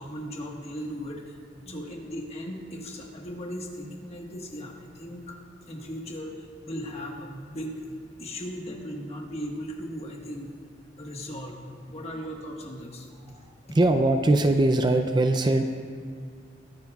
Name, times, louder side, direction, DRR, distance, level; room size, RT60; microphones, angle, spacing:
voice 1, 0.0-1.4 1.7-5.4 5.7-10.5 10.9-11.6 11.9-13.1 13.7-13.8, equal, 35° left, 0 dB, 1.4 m, -37 dB
voice 2, 13.7-15.7, right 2 dB, 25° right, 6 dB, 0.4 m, -21 dB
21.0 x 9.5 x 2.4 m, 2.2 s
head